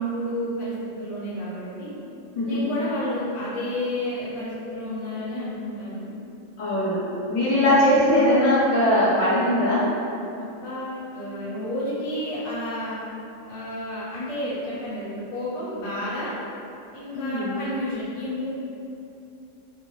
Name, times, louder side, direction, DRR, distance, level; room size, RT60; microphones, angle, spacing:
voice 1, 0.0-1.9 2.4-6.1 7.7-8.0 10.4-13.0 13.5-16.4 16.9-18.5, equal, 30° left, -13 dB, 0.8 m, -31 dB
voice 2, 6.6-7.0 7.3-9.8 17.1-17.6, left 1 dB, 55° left, -13 dB, 1.5 m, -20 dB
2.9 x 2.2 x 3.1 m, 2.8 s
omnidirectional pair, 1.3 m